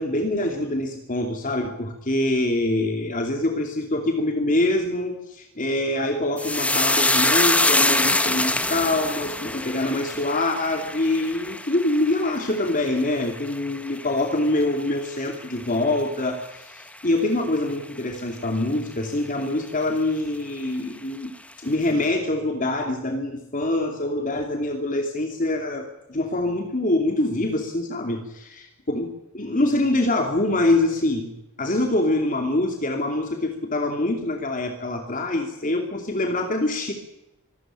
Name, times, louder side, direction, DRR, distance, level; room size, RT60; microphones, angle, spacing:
voice 1, 0.0-29.1 29.3-31.3 31.6-36.9, left 2 dB, 40° left, 3 dB, 2.7 m, -25 dB
sound 1, 6.4-15.0 15.3-15.9 16.2-16.5, left 2 dB, 5° left, 1.3 m, -25 dB
25.0 x 13.5 x 9.1 m, 0.91 s
head